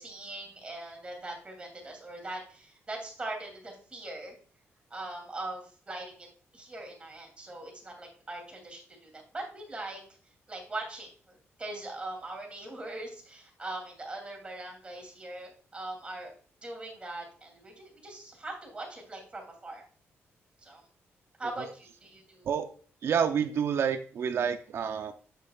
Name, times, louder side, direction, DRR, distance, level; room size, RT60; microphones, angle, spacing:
voice 1, 0.0-4.3 4.9-6.3 6.5-10.0 10.5-16.3 16.6-19.8 20.6-20.8 21.4-22.5, right 2 dB, 25° right, 1 dB, 2.8 m, -41 dB
voice 2, 23.0-25.1, right 7 dB, 60° right, 8 dB, 0.6 m, -28 dB
7.9 x 6.6 x 2.4 m, 0.41 s
cardioid pair, 110°, 5 cm